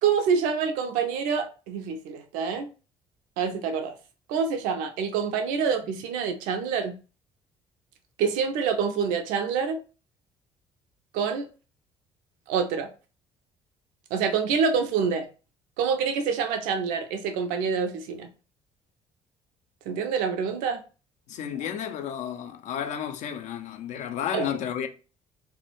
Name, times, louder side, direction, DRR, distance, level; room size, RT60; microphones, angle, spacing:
voice 1, 0.0-2.7 3.4-3.9 4.3-6.9 8.2-9.8 11.1-11.5 12.5-12.9 14.1-15.3 15.8-18.3 19.9-20.8 24.3-24.5, right 6 dB, 70° right, 0.4 m, -26 dB
voice 2, 21.3-24.9, left 9 dB, 55° left, 0.4 m, -32 dB
2.2 x 2.1 x 2.9 m
hypercardioid pair, 50°, 15 cm